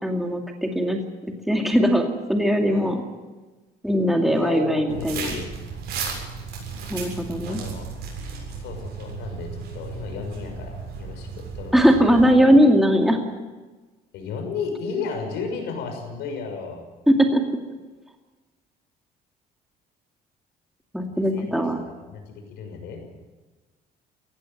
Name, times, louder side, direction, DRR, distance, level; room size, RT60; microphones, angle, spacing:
voice 1, 0.0-3.0 3.8-5.3 6.9-7.6 11.7-13.2 17.1-17.4 20.9-21.8, equal, ahead, 3 dB, 2.4 m, -20 dB
voice 2, 4.0-5.5 7.5-7.9 8.5-11.7 14.1-16.8 21.3-23.0, left 5 dB, 85° left, 4 dB, 6.3 m, -33 dB
sound 1, 4.9-12.3, right 5 dB, 75° right, 7.3 m, -35 dB
19.0 x 15.5 x 9.2 m, 1.3 s
cardioid pair, 110°, 17 cm